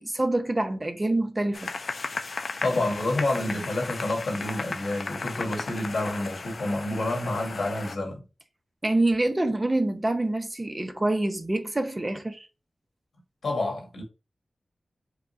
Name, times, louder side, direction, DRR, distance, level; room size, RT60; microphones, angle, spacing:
voice 1, 0.0-1.7 8.8-12.5, right 2 dB, 25° right, 0.6 m, -26 dB
sound 1, 1.5-8.0, left 3 dB, 60° left, 0.4 m, -35 dB
voice 2, 2.6-8.2 13.4-14.0, left 2 dB, 85° left, 1.7 m, -28 dB
5.0 x 2.3 x 3.9 m
wide cardioid pair, 75°, 0 cm